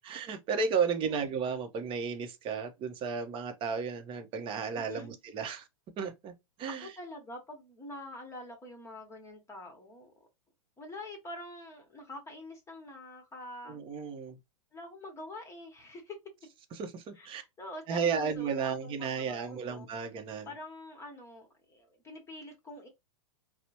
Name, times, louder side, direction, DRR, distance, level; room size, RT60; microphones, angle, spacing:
voice 1, 0.0-5.7 6.0-6.3 6.6-6.9 13.7-14.4 16.7-17.4 17.9-20.5, right 6 dB, 30° right, 0.7 m, -33 dB
voice 2, 4.8-5.1 6.8-10.1 10.8-13.8 14.7-16.2 17.2-19.9 20.4-22.9, left 1 dB, 15° left, 1.1 m, -46 dB
4.1 x 2.0 x 2.9 m
hypercardioid pair, 110°, 18 cm